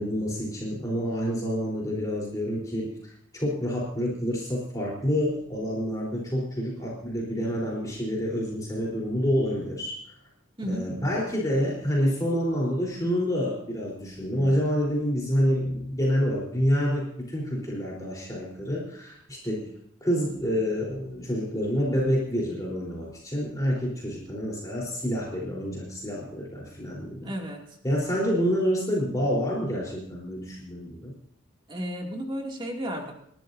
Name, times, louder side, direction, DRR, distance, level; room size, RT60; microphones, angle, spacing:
voice 1, 0.0-2.9 3.3-10.0 10.7-19.7 20.0-27.3 27.8-31.1, equal, 15° left, -4 dB, 3.9 m, -28 dB
voice 2, 10.6-10.9 27.2-27.6 31.7-33.1, equal, 25° right, 1 dB, 2.5 m, -33 dB
29.0 x 12.5 x 2.7 m, 0.69 s
head